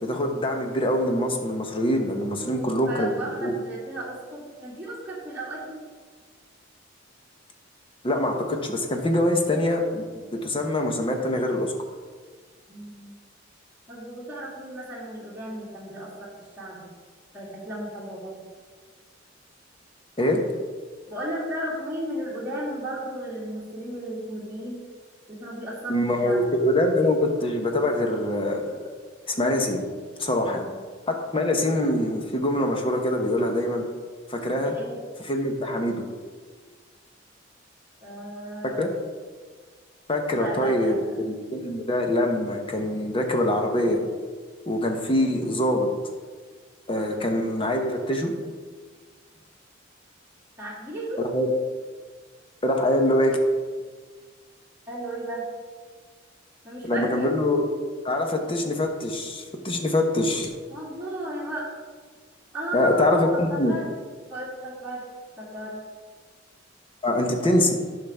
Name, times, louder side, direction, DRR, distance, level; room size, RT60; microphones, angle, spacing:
voice 1, 0.0-3.1 3.4-3.5 8.0-11.7 20.2-20.4 25.9-28.8 29.3-29.8 30.2-30.7 31.1-33.9 34.3-34.7 35.2-36.0 38.8-38.9 40.1-44.0 44.7-45.9 46.9-48.3 51.2-51.5 52.6-53.4 56.8-57.7 58.0-60.5 62.7-63.7 67.0-67.8, left 1 dB, 30° left, 3 dB, 0.9 m, -24 dB
voice 2, 2.4-5.8 12.7-13.1 13.9-16.3 16.6-16.9 17.3-18.3 21.1-24.8 25.3-26.4 30.4-30.8 34.6-35.0 38.0-38.9 40.3-41.1 50.6-51.2 54.9-55.5 56.6-57.3 60.7-61.7 62.5-63.9 64.3-65.0 65.4-65.8, right 1 dB, 10° right, -7 dB, 2.2 m, -34 dB
11.0 x 5.7 x 3.4 m, 1.5 s
head